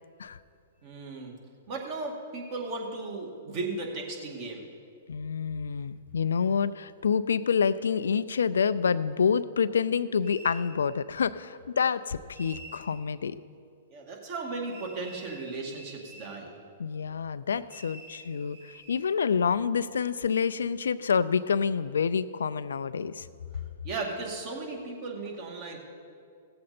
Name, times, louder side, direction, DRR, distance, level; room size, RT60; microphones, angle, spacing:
voice 1, 0.8-1.3 1.7-4.6 13.9-16.5 23.8-25.8, right 3 dB, 45° right, 0 dB, 2.2 m, -36 dB
voice 2, 5.1-13.4 16.8-23.3, left 6 dB, 85° left, 14 dB, 0.4 m, -27 dB
sound 1, 10.2-10.7 12.3-12.9 14.7-16.4 17.7-19.1, right 1 dB, 65° right, 3.2 m, -48 dB
16.5 x 7.6 x 4.3 m, 2.4 s
hypercardioid pair, 130°, 0 cm